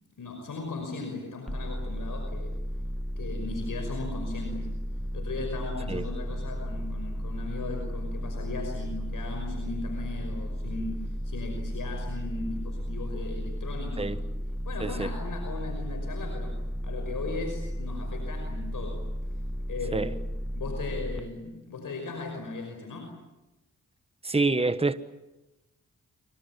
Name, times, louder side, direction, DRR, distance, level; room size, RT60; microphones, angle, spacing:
voice 1, 0.2-2.6 3.2-4.7 5.1-14.3 14.6-19.1 19.7-20.1 20.6-23.1, left 3 dB, 70° left, 5.6 m, -37 dB
sound 1, 1.5-21.2, equal, ahead, 1.7 m, -34 dB
voice 2, 14.8-15.1 19.9-20.1 24.2-25.0, right 3 dB, 15° right, 1.4 m, -26 dB
27.5 x 25.5 x 7.3 m
cardioid pair, 55°, 33 cm